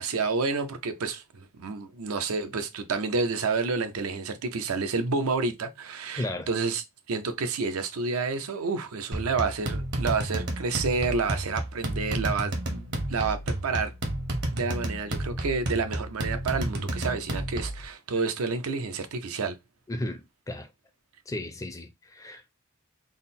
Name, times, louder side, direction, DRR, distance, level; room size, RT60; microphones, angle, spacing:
voice 1, 0.0-13.9 14.5-19.6, right 4 dB, 85° right, 0.6 m, -29 dB
voice 2, 6.2-6.5 19.9-20.7 21.3-22.6, left 1 dB, 15° left, 0.4 m, -35 dB
sound 1, 9.1-17.8, right 1 dB, 50° right, 0.7 m, -31 dB
3.6 x 2.0 x 4.1 m
head